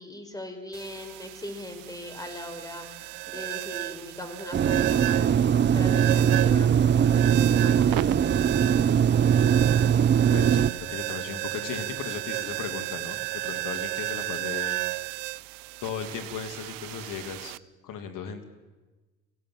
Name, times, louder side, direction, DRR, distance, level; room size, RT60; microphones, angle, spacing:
voice 1, 0.0-8.1, left 1 dB, 10° left, 6 dB, 4.8 m, -40 dB
sound 1, 0.7-17.6, right 20 dB, 75° right, 0.6 m, -34 dB
sound 2, 4.5-10.7, right 8 dB, 35° right, 0.6 m, -21 dB
voice 2, 10.3-14.8 15.8-17.5 17.8-18.4, left 7 dB, 70° left, 7 dB, 2.5 m, -36 dB
22.5 x 16.0 x 7.6 m, 1.2 s
hypercardioid pair, 60°, 34 cm